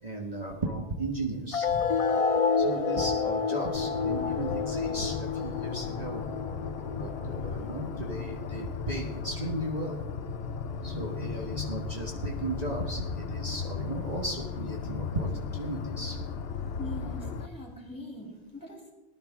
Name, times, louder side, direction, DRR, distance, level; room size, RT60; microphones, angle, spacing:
voice 1, 0.0-1.9 2.6-6.4 6.9-10.0 10.8-16.3, right 2 dB, 40° right, -1 dB, 1.6 m, -35 dB
sound 1, 1.5-8.5, left 5 dB, 45° left, 0.5 m, -29 dB
sound 2, 3.7-17.5, left 6 dB, 75° left, 1.0 m, -36 dB
voice 2, 16.8-18.9, left 2 dB, 20° left, -1 dB, 3.0 m, -42 dB
19.5 x 11.5 x 3.6 m, 1.0 s
omnidirectional pair, 1.1 m